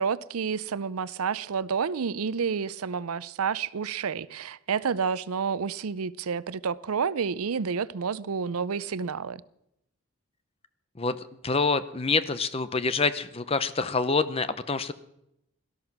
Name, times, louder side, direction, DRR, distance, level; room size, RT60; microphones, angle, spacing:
voice 1, 0.0-9.4, right 6 dB, 85° right, 0.6 m, -29 dB
voice 2, 11.4-14.9, left 4 dB, 25° left, 0.6 m, -26 dB
17.5 x 13.0 x 6.0 m
head